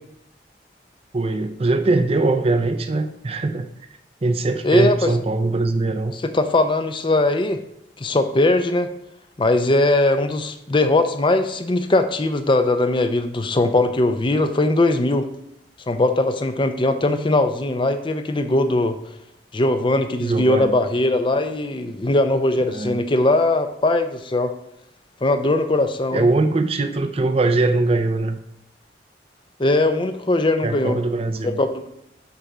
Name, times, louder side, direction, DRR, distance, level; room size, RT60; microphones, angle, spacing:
voice 1, 1.1-3.7 4.2-6.2 20.2-20.8 22.7-23.0 26.1-28.4 30.6-31.6, right 2 dB, 35° right, 8 dB, 0.5 m, -21 dB
voice 2, 4.6-5.1 6.3-7.6 8.0-8.9 9.4-15.3 15.9-19.0 19.5-24.5 25.2-26.3 29.6-31.0 31.4-31.9, left 2 dB, 30° left, 9 dB, 0.5 m, -20 dB
6.8 x 4.1 x 6.0 m, 0.79 s
head